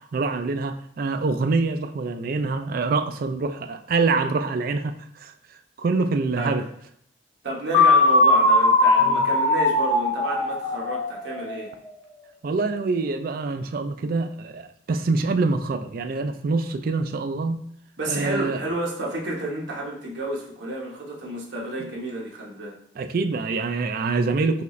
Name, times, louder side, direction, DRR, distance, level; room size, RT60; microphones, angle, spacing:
voice 1, 0.1-5.3 5.8-6.7 9.0-9.2 12.4-17.6 18.1-18.6 21.8-21.9 23.0-24.6, right 3 dB, 50° right, 8 dB, 0.3 m, -25 dB
voice 2, 7.4-11.7 18.0-22.8, right 2 dB, 70° right, -2 dB, 1.1 m, -30 dB
sound 1, 7.7-11.6, left 2 dB, 30° left, 0.6 m, -19 dB
5.5 x 2.4 x 3.1 m, 0.71 s
head